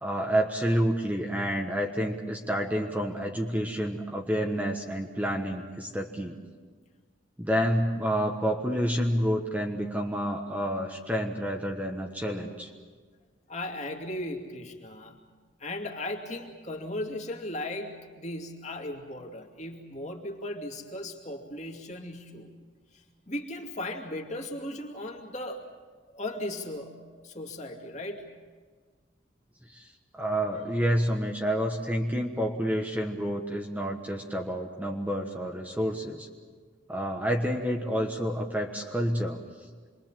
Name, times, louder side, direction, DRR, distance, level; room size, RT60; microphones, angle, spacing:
voice 1, 0.0-6.4 7.4-12.7 29.7-29.9 30.1-36.3 36.9-39.4, equal, 10° right, 1 dB, 1.2 m, -29 dB
voice 2, 13.5-15.2 15.6-22.5 22.9-25.7 26.0-28.3, left 1 dB, 35° left, 1 dB, 2.5 m, -37 dB
27.0 x 22.0 x 7.5 m, 1.5 s
head